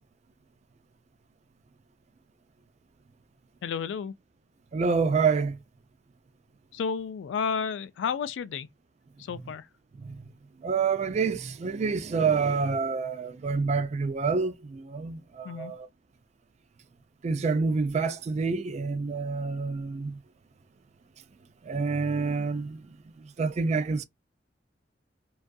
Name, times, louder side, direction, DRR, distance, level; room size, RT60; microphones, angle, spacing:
voice 1, 3.6-4.1 6.7-8.7 9.3-9.6 15.4-15.7, left 6 dB, 90° left, 0.3 m, -31 dB
voice 2, 4.7-5.6 10.0-10.2 10.6-15.9 17.2-20.2 21.7-22.8 23.4-24.0, right 4 dB, 40° right, 0.3 m, -27 dB
2.5 x 2.3 x 2.2 m
head